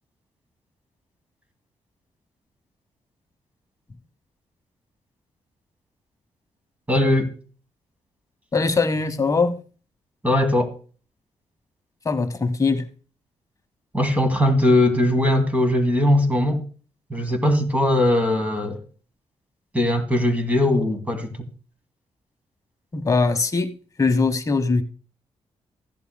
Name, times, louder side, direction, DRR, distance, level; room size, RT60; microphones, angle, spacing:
voice 1, 6.9-7.3 10.2-10.7 13.9-16.6 17.1-18.8 19.7-21.3, left 1 dB, 15° right, 2.4 m, -20 dB
voice 2, 8.5-9.6 12.0-12.8 22.9-23.7 24.0-24.8, left 4 dB, 30° left, 1.1 m, -21 dB
15.5 x 11.0 x 2.2 m
cardioid pair, 115°, 12 cm